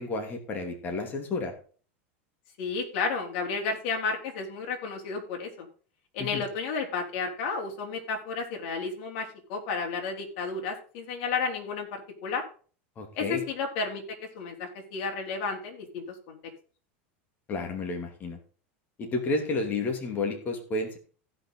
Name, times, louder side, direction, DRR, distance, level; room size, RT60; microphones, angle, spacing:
voice 1, 0.0-1.5 6.2-6.4 13.0-13.4 17.5-18.4 19.0-21.0, left 3 dB, 30° left, 3 dB, 2.9 m, -31 dB
voice 2, 2.6-5.7 6.1-12.4 13.2-16.4, left 4 dB, 60° left, 2 dB, 4.0 m, -32 dB
16.0 x 6.0 x 3.9 m, 0.40 s
supercardioid pair, 130°, 6 cm